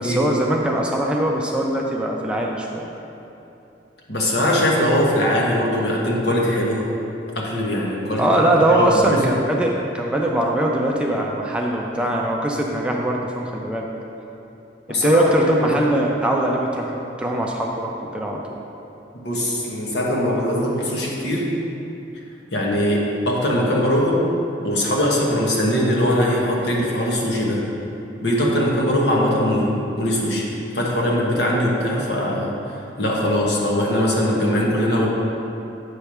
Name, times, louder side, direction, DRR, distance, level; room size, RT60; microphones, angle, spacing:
voice 1, 0.0-2.8 8.2-13.9 14.9-18.6, right 1 dB, 5° right, -1 dB, 0.4 m, -21 dB
voice 2, 4.1-6.9 7.3-8.5 8.8-9.2 14.9-15.8 19.2-21.5 22.5-24.3 24.6-27.7 28.2-30.5 30.7-32.5 33.0-35.1, equal, 65° left, -3 dB, 1.2 m, -21 dB
8.1 x 3.3 x 5.9 m, 2.8 s
head